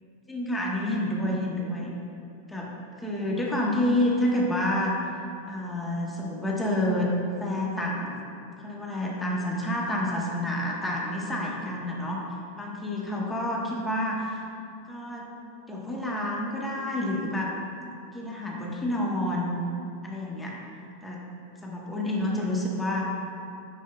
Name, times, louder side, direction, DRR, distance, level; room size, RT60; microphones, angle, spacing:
voice 1, 0.3-1.9 2.5-2.7 3.0-5.0 5.5-7.1 7.4-8.2 8.6-14.4 14.9-15.2 15.7-17.5 18.1-19.6 20.0-20.5 21.0-21.3 21.6-23.1, left 1 dB, 10° left, -3 dB, 0.9 m, -29 dB
7.2 x 5.6 x 2.3 m, 2.6 s
hypercardioid pair, 95°, 0 cm